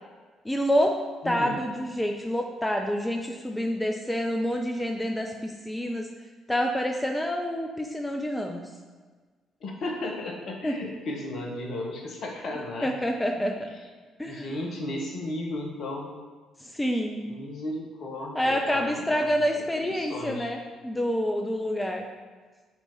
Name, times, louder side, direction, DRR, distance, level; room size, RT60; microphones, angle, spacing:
voice 1, 0.4-1.0 1.2-6.1 6.5-8.7 10.6-10.7 12.8-13.7 14.2-14.5 16.6-17.2 18.3-20.6 20.8-22.1, equal, 10° left, 2 dB, 0.7 m, -27 dB
voice 2, 1.2-1.6 9.6-12.9 13.4-13.5 14.2-16.1 17.2-20.5, left 1 dB, 55° left, 0 dB, 1.4 m, -35 dB
7.8 x 4.6 x 4.6 m, 1.4 s
figure-of-eight pair, 45°, 0 cm